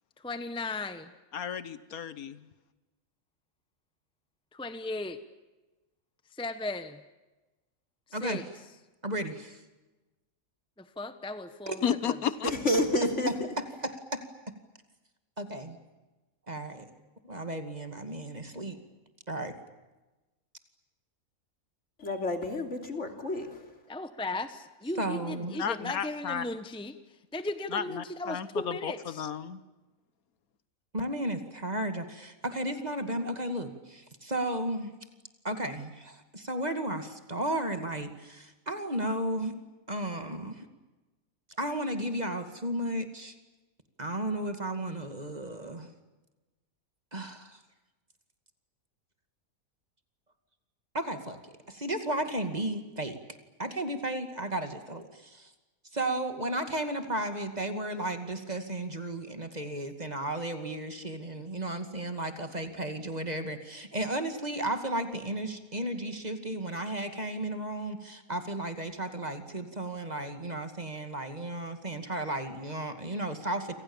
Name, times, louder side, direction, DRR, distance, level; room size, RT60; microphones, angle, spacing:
voice 1, 0.2-1.1 4.5-5.2 6.3-7.0 8.2-8.4 10.8-12.2 23.9-29.3, left 2 dB, 5° left, 10 dB, 1.1 m, -36 dB
voice 2, 1.3-2.4 11.8-12.5 25.6-26.4 27.7-27.8 28.3-28.5 28.8-28.9 29.2-29.6, left 8 dB, 80° left, 14 dB, 1.6 m, -32 dB
voice 3, 9.0-9.6 11.7-11.8 13.3-14.2 15.4-15.8 16.5-16.9 17.2-18.8 19.3-19.5 25.0-25.6 30.9-34.9 35.4-39.5 39.9-40.7 41.6-43.3 44.0-45.9 47.1-47.6 50.9-53.2 53.6-55.5 55.9-73.7, right 1 dB, 30° right, 7 dB, 2.4 m, -34 dB
voice 4, 12.4-13.3 22.0-23.7, left 1 dB, 55° left, 5 dB, 3.5 m, -29 dB
28.5 x 26.0 x 7.2 m, 1.1 s
omnidirectional pair, 1.5 m